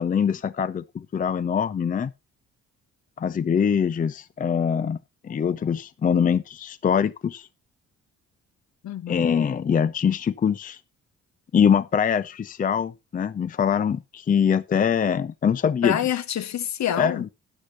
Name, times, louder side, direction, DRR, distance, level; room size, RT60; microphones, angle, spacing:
voice 1, 0.0-2.1 3.2-5.0 5.2-7.5 9.1-10.8 11.5-16.0 17.0-17.3, left 7 dB, 30° left, 0.5 m, -23 dB
voice 2, 8.8-9.4 15.8-17.3, left 10 dB, 65° left, 1.3 m, -27 dB
13.0 x 9.8 x 2.9 m
cardioid pair, 90°, 30 cm